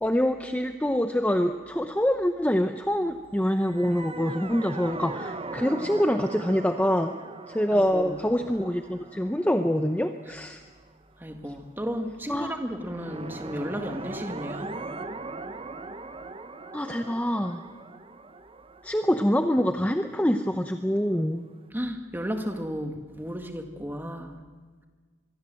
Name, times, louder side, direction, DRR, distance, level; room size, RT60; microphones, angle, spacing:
voice 1, 0.0-7.1 7.5-10.6 12.3-12.6 16.7-17.6 18.8-21.5 24.2-24.3, equal, 5° left, 7 dB, 0.7 m, -25 dB
sound 1, 3.6-10.8 12.7-20.5, right 3 dB, 25° right, 0.8 m, -40 dB
voice 2, 7.7-8.2 11.2-14.7 21.7-24.4, equal, 10° right, 4 dB, 1.8 m, -33 dB
25.0 x 22.0 x 7.7 m, 1.5 s
head